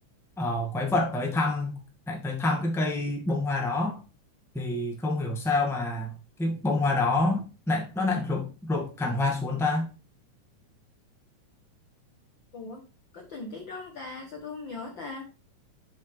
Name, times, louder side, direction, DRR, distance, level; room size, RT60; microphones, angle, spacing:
voice 1, 0.4-1.8 2.1-4.0 4.5-6.1 6.4-9.9, left 2 dB, ahead, 1.3 m, -27 dB
voice 2, 13.1-15.3, left 3 dB, 55° left, 1.4 m, -39 dB
7.8 x 7.4 x 3.4 m
omnidirectional pair, 3.7 m